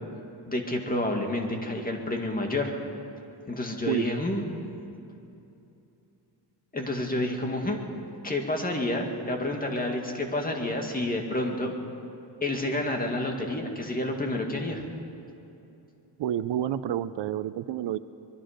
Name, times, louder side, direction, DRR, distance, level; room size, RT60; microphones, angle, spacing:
voice 1, 0.5-2.7 3.5-4.5 6.7-7.8 8.2-11.8 12.4-14.8, left 1 dB, 20° left, 2 dB, 2.2 m, -29 dB
voice 2, 16.2-18.0, right 11 dB, 75° right, 14 dB, 0.7 m, -29 dB
24.5 x 21.5 x 5.2 m, 2.8 s
wide cardioid pair, 165°, 43 cm